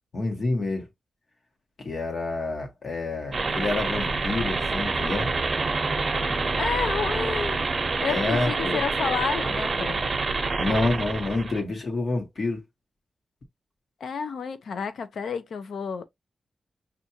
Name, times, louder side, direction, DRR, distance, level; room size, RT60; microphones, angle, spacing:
voice 1, 0.1-0.9 1.8-5.3 8.1-8.8 10.6-12.6, left 2 dB, 45° left, 1.1 m, -28 dB
sound 1, 3.3-11.6, right 3 dB, 35° right, 0.8 m, -27 dB
voice 2, 6.6-7.6 8.0-10.0 14.0-16.0, left 6 dB, 75° left, 0.6 m, -30 dB
5.7 x 2.5 x 2.7 m
wide cardioid pair, 165°, 0 cm